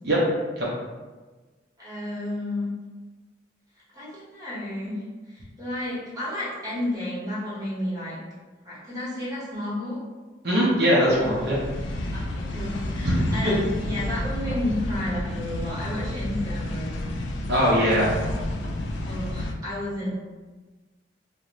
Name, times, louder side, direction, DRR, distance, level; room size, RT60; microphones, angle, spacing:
voice 1, 1.8-2.7 3.9-8.2 8.6-10.0 12.1-17.0 17.7-18.0 19.0-20.1, left 1 dB, 20° right, -10 dB, 1.2 m, -32 dB
voice 2, 10.4-11.6 13.0-13.1 17.5-18.1, equal, 65° right, -7 dB, 0.5 m, -21 dB
sound 1, 11.1-19.5, left 1 dB, 85° left, 0.3 m, -31 dB
2.4 x 2.1 x 2.9 m, 1.3 s
head